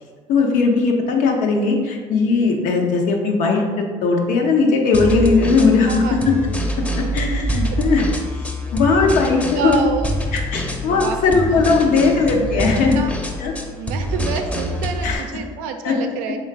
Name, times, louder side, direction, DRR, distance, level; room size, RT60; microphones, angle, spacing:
voice 1, 0.3-6.3 7.0-8.1 8.3-8.4 8.7-9.8 10.3-13.0 13.4-13.5 15.0-15.2 15.8-16.0, left 4 dB, 75° left, 1 dB, 0.7 m, -18 dB
sound 1, 4.9-15.1, equal, 10° left, 0.6 m, -25 dB
voice 2, 5.9-6.2 7.7-7.8 9.5-10.1 10.9-11.2 11.7-12.2 12.4-13.1 13.8-16.4, right 6 dB, 85° right, 6 dB, 0.4 m, -28 dB
3.8 x 2.3 x 4.4 m, 1.5 s
supercardioid pair, 75°, 14 cm